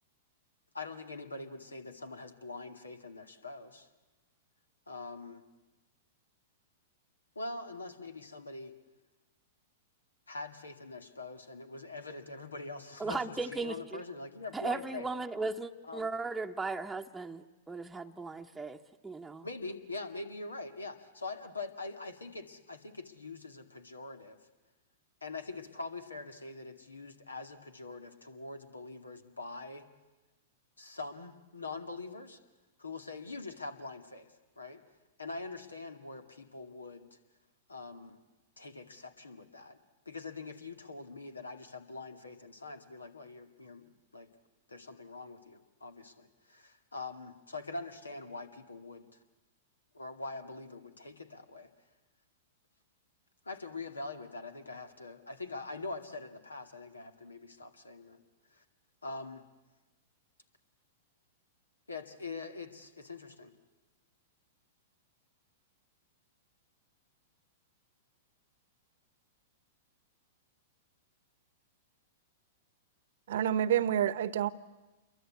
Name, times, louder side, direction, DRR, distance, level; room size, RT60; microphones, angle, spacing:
voice 1, 0.7-3.9 4.9-5.4 7.4-8.7 10.3-15.1 15.8-16.1 19.4-24.4 25.2-29.9 30.8-32.4 32.8-34.8 35.2-37.2 37.7-38.2 38.6-39.8 40.1-44.3 44.7-49.1 49.9-51.7 53.5-58.2 58.5-58.6 59.0-59.4 61.9-63.5, left 3 dB, 85° left, 8 dB, 2.2 m, -43 dB
voice 2, 13.0-14.0 14.5-18.8 19.0-19.5, right 3 dB, 10° right, 2 dB, 1.0 m, -37 dB
voice 3, 73.3-74.5, right 10 dB, 60° right, 17 dB, 1.0 m, -28 dB
28.5 x 23.0 x 8.5 m, 1.1 s
figure-of-eight pair, 105°, 0 cm